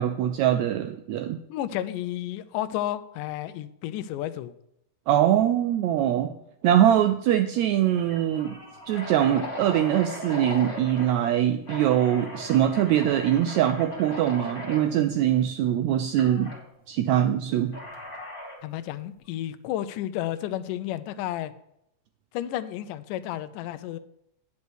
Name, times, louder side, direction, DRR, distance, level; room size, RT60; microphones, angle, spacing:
voice 1, 0.0-1.4 5.1-6.3 6.6-8.5 8.9-16.5 16.9-17.8, right 11 dB, 85° right, 7 dB, 1.6 m, -23 dB
voice 2, 1.5-4.5 18.6-21.5 22.3-24.0, left 12 dB, 85° left, 13 dB, 2.1 m, -32 dB
sound 1, 6.7-7.0 7.3-7.4 7.9-11.2 11.6-14.8 16.2-16.6 17.7-18.7, left 1 dB, 20° left, 1.8 m, -38 dB
9.7 x 5.4 x 6.2 m, 0.78 s
omnidirectional pair, 3.7 m